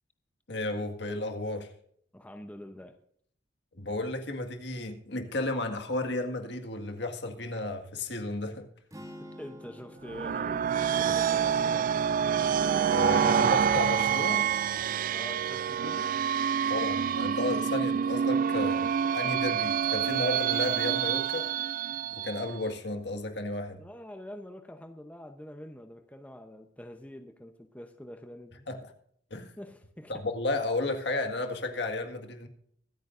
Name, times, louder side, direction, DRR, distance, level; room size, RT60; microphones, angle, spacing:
voice 1, 0.5-1.7 3.8-8.7 11.1-11.2 12.9-14.5 16.7-18.9 19.1-21.5 22.1-23.8 28.7-28.8 29.3-29.5 30.1-32.5, left 2 dB, 65° left, 5 dB, 1.9 m, -33 dB
voice 2, 2.1-3.0 9.2-10.6 10.9-12.1 15.1-16.1 23.8-28.7 29.6-30.2, left 1 dB, 10° left, 6 dB, 0.8 m, -45 dB
sound 1, 8.9-13.1, equal, 20° right, 2.2 m, -51 dB
sound 2, 10.0-22.6, right 8 dB, 45° right, 0.3 m, -27 dB
24.0 x 9.1 x 2.6 m, 0.66 s
head